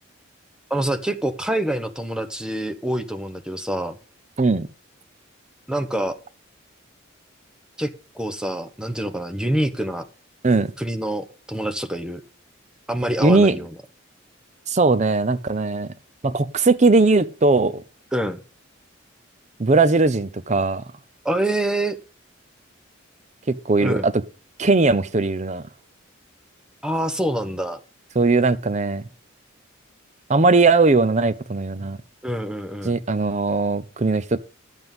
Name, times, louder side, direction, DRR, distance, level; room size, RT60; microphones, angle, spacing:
voice 1, 0.7-4.0 5.7-6.2 7.8-10.1 10.8-12.2 12.9-13.7 18.1-18.4 21.2-22.0 23.8-24.1 26.8-27.8 32.2-33.0, right 1 dB, 5° right, 0.9 m, -26 dB
voice 2, 13.2-13.6 14.7-15.9 16.2-17.8 19.6-20.8 23.5-24.2 24.6-25.6 28.1-29.0 30.3-32.0 32.8-34.4, right 3 dB, 35° right, 0.6 m, -19 dB
11.0 x 8.0 x 5.3 m
head